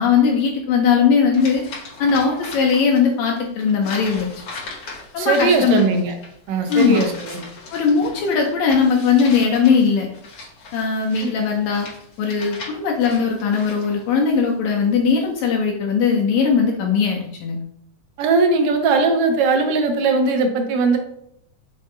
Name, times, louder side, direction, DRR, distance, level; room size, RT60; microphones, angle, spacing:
voice 1, 0.0-1.6 2.0-4.3 5.1-6.0 6.7-7.1 7.7-10.1 10.7-11.9 12.2-17.6, left 6 dB, 75° left, 0 dB, 1.8 m, -19 dB
sound 1, 1.3-3.1 3.4-14.2, left 3 dB, 55° left, 1.4 m, -38 dB
voice 2, 5.2-6.1 6.5-7.4 11.2-11.3 18.2-21.0, right 3 dB, 75° right, 5 dB, 1.8 m, -19 dB
5.3 x 2.5 x 3.6 m, 0.74 s
omnidirectional pair, 3.4 m